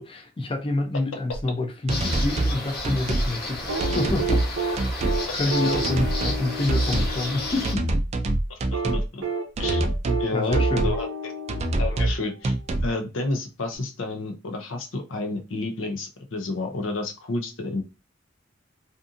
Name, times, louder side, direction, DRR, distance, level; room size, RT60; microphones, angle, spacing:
voice 1, 0.0-4.9 5.3-7.8 10.3-10.9, left 2 dB, 30° left, 0.4 m, -28 dB
sound 1, 1.3-1.4 1.9-2.6 2.8-3.3 3.8-4.5 4.8-5.2 5.7-6.4 6.7-7.2 7.6-9.1 9.6-10.2 10.5-11.0 11.5-12.2 12.4-12.9, right 2 dB, 35° right, 0.3 m, -25 dB
sound 2, 1.9-7.7, left 2 dB, 50° left, 0.9 m, -32 dB
sound 3, 3.7-7.8 8.7-12.3 13.7-13.8, right 3 dB, 90° right, 0.7 m, -30 dB
voice 2, 8.5-9.2 9.6-9.8 10.2-11.3 11.8-17.8, left 2 dB, 90° left, 0.6 m, -31 dB
2.6 x 2.5 x 2.4 m
head